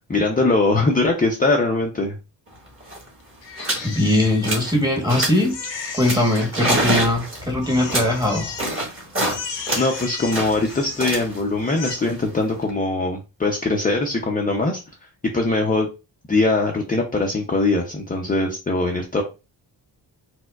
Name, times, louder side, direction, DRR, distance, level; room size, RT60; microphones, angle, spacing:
voice 1, 0.1-2.2 9.8-14.8 15.3-15.9 16.3-19.2, left 2 dB, 20° left, 1 dB, 0.5 m, -21 dB
sound 1, 2.5-2.6 2.8-3.1 3.6-3.9 4.2-4.8 5.1-5.5 6.0-9.4 9.7-12.7, right 1 dB, 30° right, 1.4 m, -26 dB
Crying sobbing, 3.4-5.1 5.5-7.3 7.6-8.8 9.2-11.3 11.6-11.9, left 5 dB, 80° left, 0.9 m, -35 dB
voice 2, 3.8-5.6 5.9-8.5, left 1 dB, 10° right, 1 dB, 1.1 m, -20 dB
4.3 x 2.1 x 2.3 m, 0.29 s
cardioid pair, 90°, 44 cm